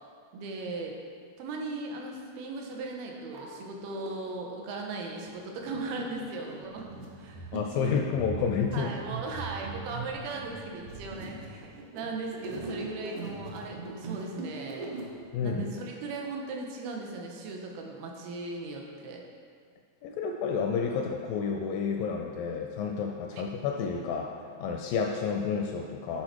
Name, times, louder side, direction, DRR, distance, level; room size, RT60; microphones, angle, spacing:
voice 1, 0.3-1.0 1.4-6.9 7.2-7.9 8.7-14.9 15.4-19.2 23.3-23.4, right 3 dB, 90° right, 0 dB, 2.7 m, -38 dB
sound 1, 1.9-2.0 2.7-2.8 3.1-4.1 4.7-15.6, right 3 dB, 70° right, 2.2 m, -40 dB
voice 2, 7.5-8.9 15.3-15.6 20.0-24.3 24.6-26.2, left 6 dB, 85° left, 2 dB, 2.0 m, -30 dB
10.5 x 3.9 x 4.7 m, 2.1 s
omnidirectional pair, 4.4 m